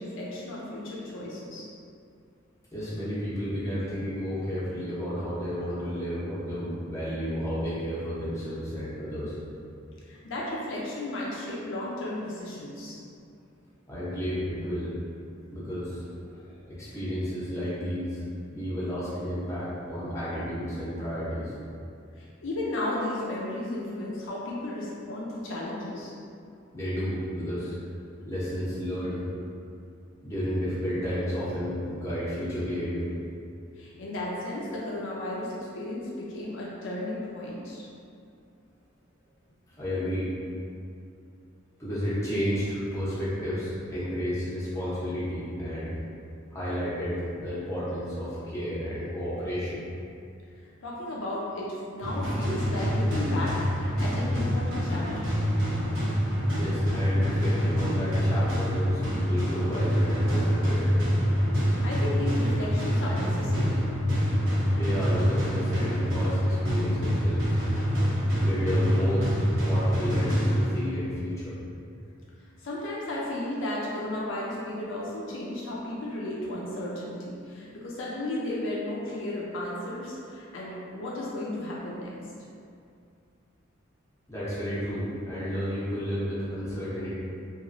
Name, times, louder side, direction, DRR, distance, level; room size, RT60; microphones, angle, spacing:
voice 1, 0.0-1.7 10.0-13.0 22.2-26.1 33.8-37.9 50.8-55.4 61.6-63.8 72.6-82.1, left 1 dB, 65° left, -5 dB, 0.4 m, -34 dB
voice 2, 2.7-9.4 13.9-14.9 15.5-18.2 18.5-21.5 26.7-29.2 30.2-33.1 39.7-40.3 41.8-46.0 46.5-49.8 56.6-60.9 64.7-67.4 68.4-69.3 69.6-71.5 84.3-87.1, equal, 15° left, -11 dB, 0.7 m, -32 dB
sound 1, 52.0-71.0, equal, 60° right, 1.1 m, -26 dB
2.9 x 2.4 x 2.5 m, 2.5 s
head